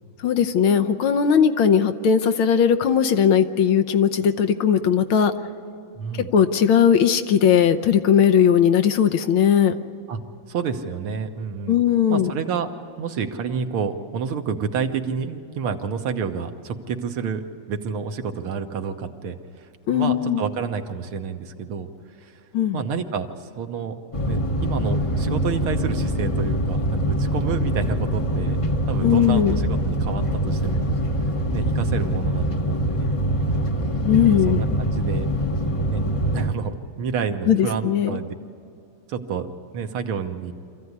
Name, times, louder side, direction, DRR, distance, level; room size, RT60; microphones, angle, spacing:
voice 1, 0.2-5.3 6.3-9.7 11.7-12.3 19.9-20.4 22.5-22.8 29.0-29.6 34.0-34.6 37.5-38.2, left 8 dB, 75° left, 7 dB, 1.6 m, -18 dB
voice 2, 6.0-6.3 10.1-10.2 10.5-11.8 12.1-12.7 13.0-17.4 17.7-21.9 22.2-22.4 22.7-24.0 24.3-28.6 28.9-31.0 31.5-33.2 34.2-35.3 35.9-36.1 36.3-38.4 39.1-39.5 39.7-40.5, right 6 dB, 75° right, 6 dB, 2.0 m, -29 dB
sound 1, 24.1-36.5, equal, 25° left, 0.8 m, -24 dB
26.0 x 15.0 x 9.6 m, 2.6 s
omnidirectional pair, 2.4 m